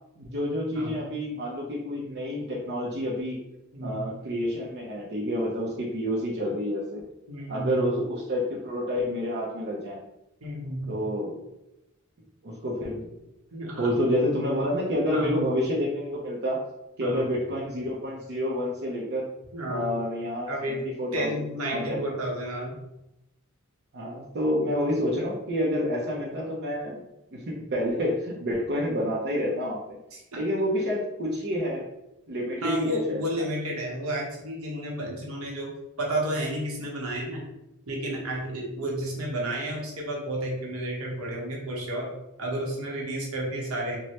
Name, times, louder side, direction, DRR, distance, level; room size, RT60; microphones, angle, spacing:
voice 1, 0.2-3.4 3.8-7.0 7.5-10.0 10.9-11.4 12.4-13.1 13.8-16.6 17.0-19.3 19.7-21.4 21.7-22.0 23.9-27.0 27.3-30.0 30.3-31.8 32.3-33.2, equal, 55° right, -5 dB, 0.5 m, -28 dB
voice 2, 3.7-4.1 7.3-7.9 10.4-11.0 13.5-13.9 15.1-15.3 17.0-17.3 19.5-19.9 20.5-20.8 21.1-22.8 30.1-30.4 32.6-37.4 37.9-42.1 42.4-44.0, right 1 dB, 80° right, -2 dB, 0.8 m, -31 dB
3.1 x 2.1 x 2.8 m, 0.88 s
head